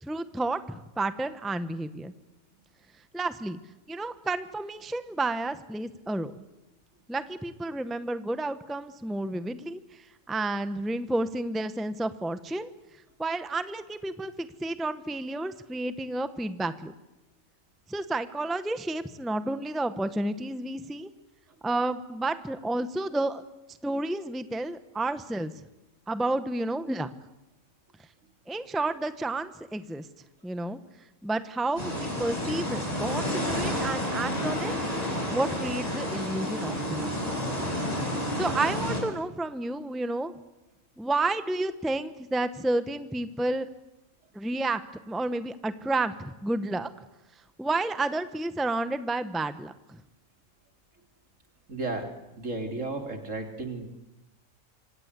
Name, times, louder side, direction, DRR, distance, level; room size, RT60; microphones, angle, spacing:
voice 1, 0.0-2.1 3.1-3.6 3.9-6.3 7.1-12.7 13.2-16.9 17.9-21.1 21.6-23.4 23.8-25.5 26.1-27.1 28.5-30.1 30.4-30.8 31.2-34.9 35.3-37.1 38.4-40.3 41.0-43.7 44.3-44.8 45.1-46.9 47.6-50.0, right 2 dB, ahead, 11 dB, 1.0 m, -31 dB
sound 1, 31.8-39.0, equal, 25° left, 7.7 m, -30 dB
voice 2, 51.7-52.1 52.4-53.9, right 2 dB, 60° right, 4 dB, 3.8 m, -33 dB
26.0 x 26.0 x 8.3 m, 0.95 s
omnidirectional pair, 1.4 m